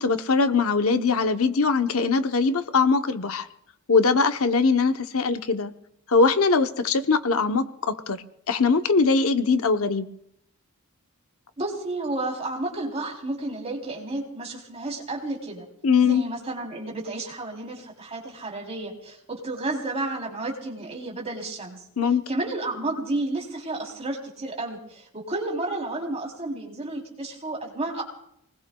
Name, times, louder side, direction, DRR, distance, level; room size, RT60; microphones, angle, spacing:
voice 1, 0.0-3.5 3.9-5.7 6.1-10.1 15.8-16.2 22.0-22.2, left 4 dB, 65° left, 8 dB, 0.8 m, -21 dB
voice 2, 11.6-15.6 16.0-21.8 22.3-28.0, right 2 dB, 30° right, 0 dB, 3.4 m, -31 dB
28.5 x 20.0 x 2.3 m, 0.73 s
head